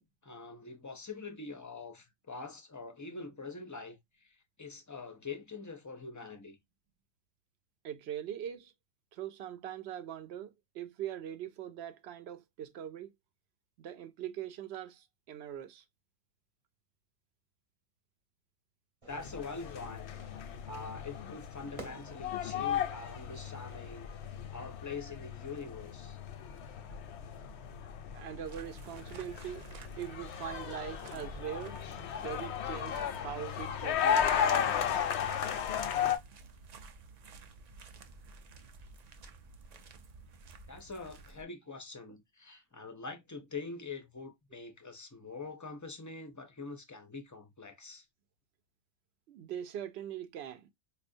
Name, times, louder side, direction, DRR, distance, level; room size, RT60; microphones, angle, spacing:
voice 1, 0.0-6.6 19.1-20.2 20.6-24.1 24.5-26.2 40.7-48.1, left 4 dB, 30° left, 0.3 m, -44 dB
voice 2, 7.8-8.7 9.1-13.1 13.8-15.8 28.1-29.6 30.0-31.8 32.2-34.8 49.3-50.7, right 10 dB, 75° right, 0.8 m, -42 dB
Fire / Fireworks, 19.0-24.6, right 2 dB, 30° right, 1.0 m, -55 dB
sound 1, 19.1-36.2, left 8 dB, 85° left, 0.9 m, -35 dB
sound 2, 28.4-41.4, right 3 dB, 55° right, 0.5 m, -52 dB
4.3 x 2.4 x 2.5 m
omnidirectional pair, 1.1 m